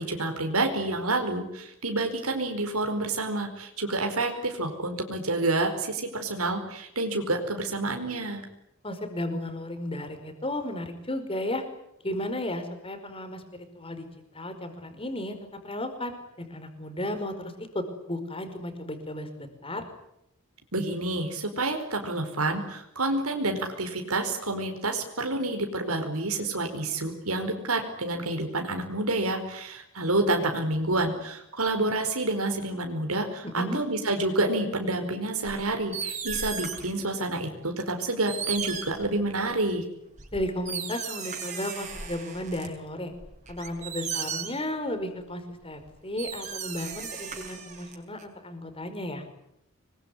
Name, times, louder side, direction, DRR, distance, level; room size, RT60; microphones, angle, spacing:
voice 1, 0.0-8.4 20.7-39.8, right 2 dB, 90° right, 4 dB, 4.8 m, -28 dB
voice 2, 8.8-11.6 12.0-13.4 13.7-14.1 14.3-15.4 15.6-19.8 33.4-33.8 40.3-43.1 43.5-49.2, left 1 dB, 25° left, 8 dB, 5.0 m, -34 dB
sound 1, 35.5-37.0 37.8-37.9 38.3-39.6 40.2-42.7 43.1-44.7 45.8-45.9 46.2-48.2, right 6 dB, 35° right, 6.6 m, -36 dB
26.5 x 22.5 x 10.0 m, 0.79 s
head